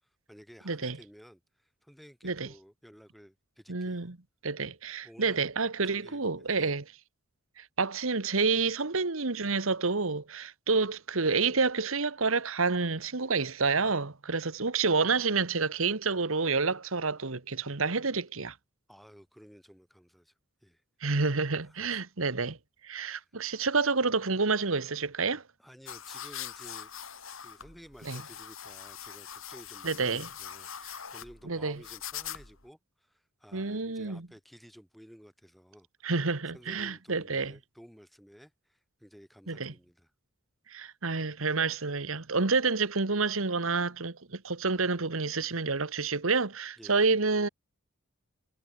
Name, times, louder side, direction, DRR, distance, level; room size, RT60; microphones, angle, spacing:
voice 1, 0.0-4.1 5.0-5.5 5.8-6.7 18.9-20.3 20.6-20.8 21.6-22.0 25.6-26.9 27.4-36.1 36.5-40.1 46.8-47.0, equal, ahead, 5.8 m, -54 dB
voice 2, 0.7-1.0 2.2-2.5 3.7-4.2 4.4-6.8 7.6-18.5 21.0-22.6 22.8-25.4 28.1-28.2 29.8-30.3 31.5-31.8 33.5-34.3 36.0-37.5 39.5-39.7 40.7-47.5, right 4 dB, 80° right, 1.5 m, -29 dB
sound 1, 25.9-32.7, left 9 dB, 80° left, 7.8 m, -43 dB
head